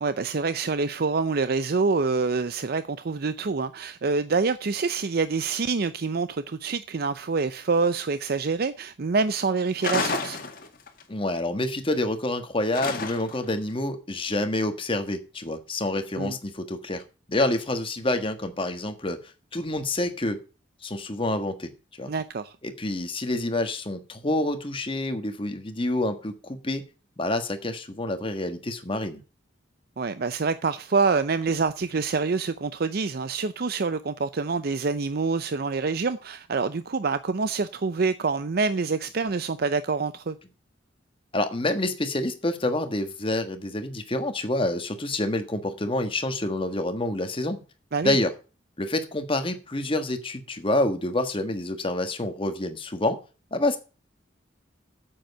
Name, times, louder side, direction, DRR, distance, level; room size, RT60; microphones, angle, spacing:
voice 1, 0.0-10.4 16.2-16.4 22.1-22.5 30.0-40.4 47.9-48.2, right 4 dB, 55° right, 0.5 m, -26 dB
sound 1, 9.8-11.0 12.7-13.5, left 4 dB, 50° left, 1.9 m, -30 dB
voice 2, 11.1-17.0 17.3-19.2 19.5-20.4 20.8-21.7 22.0-22.1 22.6-26.8 27.2-29.2 41.3-47.6 48.0-48.3 48.8-53.2 53.5-53.8, left 1 dB, 30° left, 1.5 m, -27 dB
9.0 x 7.8 x 6.7 m
head